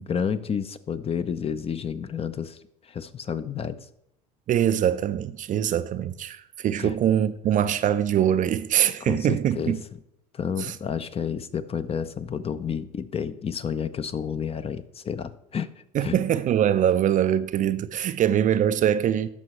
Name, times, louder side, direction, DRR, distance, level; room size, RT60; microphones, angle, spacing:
voice 1, 0.1-3.8 6.8-7.0 9.0-9.8 10.3-15.7 16.0-16.2, left 7 dB, 30° left, 0.7 m, -30 dB
voice 2, 4.5-9.8 10.6-10.8 15.9-19.3, right 10 dB, 40° right, 0.5 m, -23 dB
13.5 x 5.4 x 3.1 m
hypercardioid pair, 75°, 20 cm